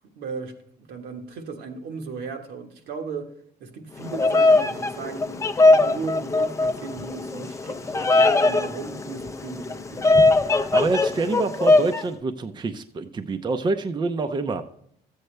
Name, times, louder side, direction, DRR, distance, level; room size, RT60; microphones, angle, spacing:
voice 1, 0.1-3.3 3.6-10.2, right 4 dB, 75° right, 1.4 m, -36 dB
Bird vocalization bird call bird song, 4.0-12.0, left 2 dB, 15° left, 0.6 m, -20 dB
voice 2, 10.7-14.7, right 3 dB, 25° right, 0.6 m, -26 dB
13.5 x 8.0 x 3.3 m
cardioid pair, 110°, 17 cm